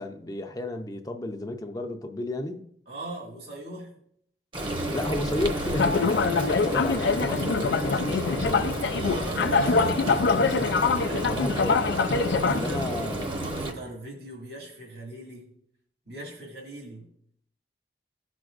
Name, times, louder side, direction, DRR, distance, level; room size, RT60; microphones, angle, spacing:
voice 1, 0.0-2.7 4.9-9.7 10.1-10.4 11.3-11.9 12.5-13.3, left 2 dB, 20° left, 0.5 m, -33 dB
voice 2, 2.9-3.9 9.0-10.4 11.0-11.4 12.2-12.9 13.3-15.5 16.1-17.1, equal, 60° right, 2.0 m, -39 dB
Frying (food), 4.5-13.7, right 1 dB, 30° right, 0.9 m, -31 dB
sound 1, 5.6-12.6, left 4 dB, 75° left, 0.4 m, -25 dB
15.5 x 6.1 x 2.5 m
head